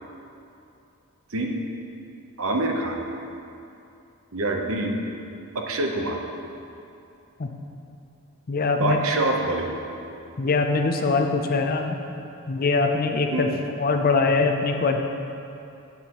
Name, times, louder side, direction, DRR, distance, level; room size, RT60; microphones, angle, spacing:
voice 1, 2.4-3.0 4.3-5.0 5.5-6.2 8.8-9.8 13.3-13.5, right 2 dB, 70° right, 2 dB, 0.8 m, -25 dB
voice 2, 8.5-9.0 10.4-12.0 12.5-13.5 13.8-15.0, left 4 dB, 40° left, 4 dB, 0.5 m, -22 dB
9.5 x 8.4 x 3.0 m, 2.7 s
head